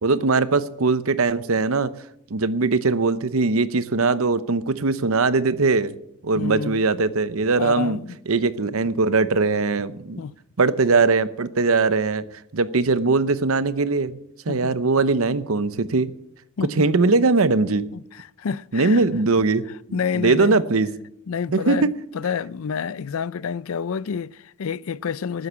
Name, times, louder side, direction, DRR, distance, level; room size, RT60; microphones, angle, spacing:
voice 1, 0.0-1.9 2.3-5.9 6.2-8.0 8.3-10.2 10.6-12.2 12.5-14.1 14.5-16.1 16.8-17.9 18.7-19.6 20.1-20.9 21.5-22.0, right 3 dB, 75° right, 0.8 m, -20 dB
voice 2, 6.3-6.8 7.6-8.2 10.2-10.4 14.5-14.7 16.6-16.9 17.9-19.0 19.9-20.6 21.3-25.5, left 6 dB, 75° left, 0.4 m, -29 dB
13.0 x 9.5 x 8.3 m
head